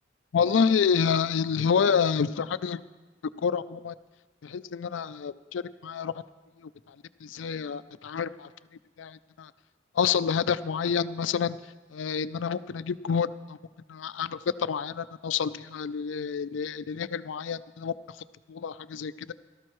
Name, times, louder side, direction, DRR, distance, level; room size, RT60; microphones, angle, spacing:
voice 1, 0.3-2.8 3.4-3.9 4.4-6.1 7.2-8.5 9.0-9.5 10.0-11.6 11.9-13.6 13.9-17.9 18.5-19.3, left 6 dB, 85° left, 15 dB, 0.4 m, -28 dB
17.5 x 13.0 x 3.1 m, 1.2 s
head